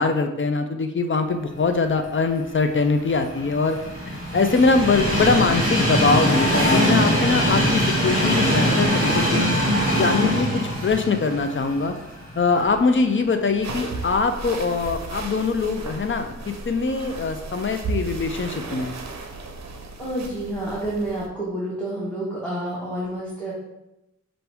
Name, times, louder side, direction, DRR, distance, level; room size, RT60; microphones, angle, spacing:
voice 1, 0.0-3.8 4.0-9.5 9.9-10.5 10.8-11.9 12.4-18.9, left 4 dB, 45° left, 7 dB, 0.4 m, -22 dB
Train, 2.7-12.8 13.2-13.3 14.4-14.5, equal, 25° right, 1.7 m, -22 dB
sound 1, 13.6-21.3, right 3 dB, 65° right, 0.6 m, -35 dB
voice 2, 20.0-23.5, right 1 dB, 5° left, -8 dB, 1.2 m, -29 dB
5.7 x 2.6 x 3.4 m, 0.91 s
wide cardioid pair, 80°, 29 cm